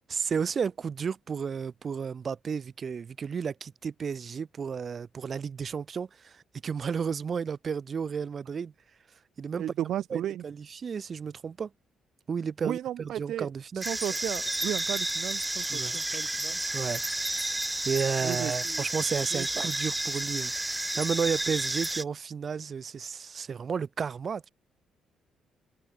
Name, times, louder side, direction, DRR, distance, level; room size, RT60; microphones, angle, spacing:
voice 1, 0.1-8.7 9.4-9.6 10.1-11.7 12.3-13.8 15.7-16.0 16.7-17.5 17.8-24.5, right 6 dB, 45° right, 3.6 m, -33 dB
voice 2, 9.6-10.4 12.6-13.5 13.7-16.6 18.2-18.8 19.3-19.7, right 11 dB, 75° right, 1.8 m, -34 dB
sound 1, 13.8-22.0, right 1 dB, 10° right, 0.9 m, -31 dB
cardioid pair, 90°, 0 cm